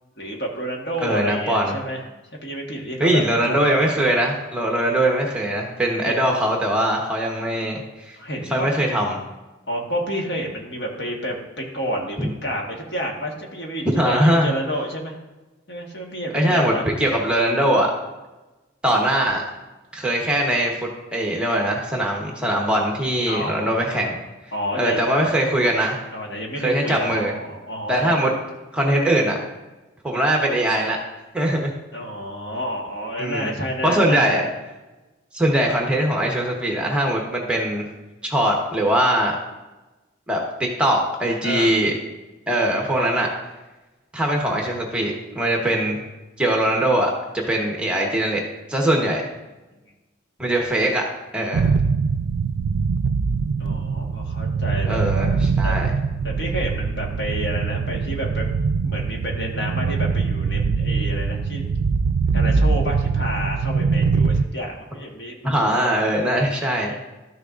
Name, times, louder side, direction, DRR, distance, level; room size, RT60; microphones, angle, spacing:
voice 1, 0.2-2.0 2.4-3.7 6.0-6.2 8.2-8.7 9.7-15.1 15.7-16.9 23.3-24.1 24.5-25.0 26.1-28.3 31.9-34.5 41.4-41.8 53.6-55.0 55.6-55.7 56.2-58.5 58.8-61.7 62.3-65.9 66.9-67.0, equal, 55° left, 0 dB, 1.5 m, -30 dB
voice 2, 1.0-1.7 3.0-8.2 8.5-9.2 12.2-12.3 14.0-14.5 16.3-16.7 17.0-17.9 18.8-19.4 19.9-24.1 24.7-26.0 26.6-27.3 27.9-28.3 28.7-29.4 30.0-31.0 31.3-31.7 33.2-33.5 33.8-34.4 35.3-37.8 38.2-39.4 40.3-41.9 42.5-43.3 44.1-46.0 46.4-47.1 47.5-48.4 48.7-49.3 50.4-51.0 51.3-51.7 54.9-55.9 65.4-67.0, right 1 dB, 5° right, -1 dB, 1.1 m, -21 dB
sound 1, 51.5-64.5, right 5 dB, 65° right, 0.3 m, -22 dB
12.5 x 6.6 x 2.5 m, 1.1 s
head